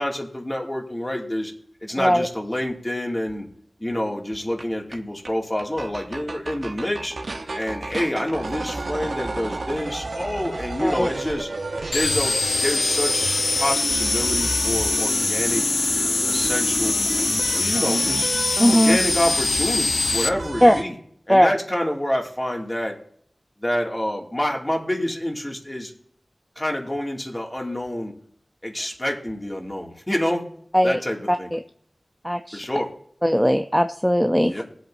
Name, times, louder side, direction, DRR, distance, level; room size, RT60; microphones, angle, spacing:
voice 1, 0.0-1.5 1.8-3.5 3.8-7.1 7.5-11.5 11.9-15.7 16.3-17.2 17.6-18.3 18.7-21.0 21.3-23.0 23.6-25.9 26.6-28.1 28.6-30.5 30.8-31.5 32.5-32.9 34.5-34.6, left 1 dB, 25° left, 0 dB, 2.4 m, -27 dB
sound 1, 4.6-4.7 4.9-5.0 5.2-5.3 5.6-20.8, right 2 dB, 75° right, 1.0 m, -31 dB
sound 2, 11.9-20.3, left 3 dB, 75° left, 0.5 m, -23 dB
voice 2, 18.6-19.0 20.6-20.7 21.3-21.5 30.7-31.0 31.3-31.6 32.2-32.6 33.2-34.6, equal, 5° left, 7 dB, 0.6 m, -18 dB
20.5 x 8.0 x 2.7 m, 0.65 s
cardioid pair, 40°, 0 cm